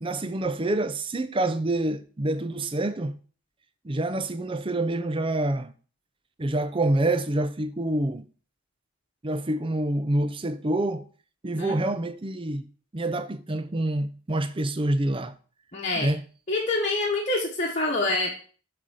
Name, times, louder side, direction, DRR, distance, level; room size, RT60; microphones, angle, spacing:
voice 1, 0.0-3.2 3.8-5.7 6.4-8.2 9.2-11.0 11.4-12.7 12.9-15.3 16.0-16.2, right 1 dB, 25° right, 0.5 m, -27 dB
voice 2, 11.5-12.0 15.7-16.1 16.5-18.4, left 2 dB, 35° left, 1.2 m, -26 dB
7.9 x 4.1 x 6.4 m
head